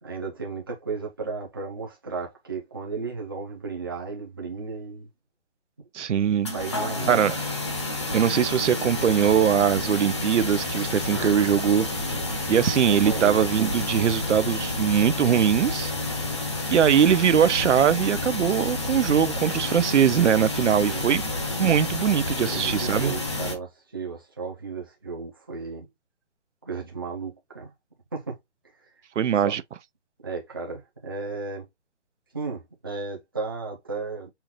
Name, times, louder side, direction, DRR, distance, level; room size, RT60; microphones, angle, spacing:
voice 1, 0.0-5.1 6.5-7.4 12.8-13.4 20.9-21.1 22.5-25.9 26.6-27.7 28.1-28.4 28.8-28.9 29.4-29.5 30.2-31.7 32.3-34.3, right 4 dB, 20° right, 0.6 m, -34 dB
voice 2, 5.9-6.5 7.1-7.4 8.1-11.9 12.5-15.9 16.7-21.2 21.6-23.1 29.2-29.6, right 8 dB, 85° right, 0.6 m, -21 dB
sound 1, 6.5-23.6, left 2 dB, 25° left, 0.7 m, -29 dB
5.7 x 2.5 x 3.0 m
hypercardioid pair, 170°, 35 cm